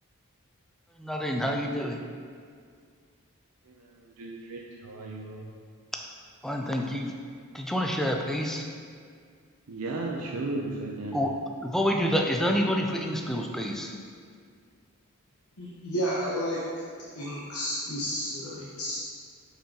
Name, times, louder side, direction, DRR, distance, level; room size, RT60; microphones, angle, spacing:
voice 1, 1.0-2.0 6.4-7.1 7.5-8.7 11.1-11.3 11.6-13.9, equal, ahead, 1 dB, 0.4 m, -28 dB
voice 2, 3.7-5.5 9.7-11.2, right 2 dB, 80° right, -2 dB, 0.6 m, -35 dB
voice 3, 15.6-16.6 17.1-19.0, equal, 75° left, -7 dB, 1.0 m, -31 dB
6.8 x 5.6 x 2.9 m, 2.1 s
head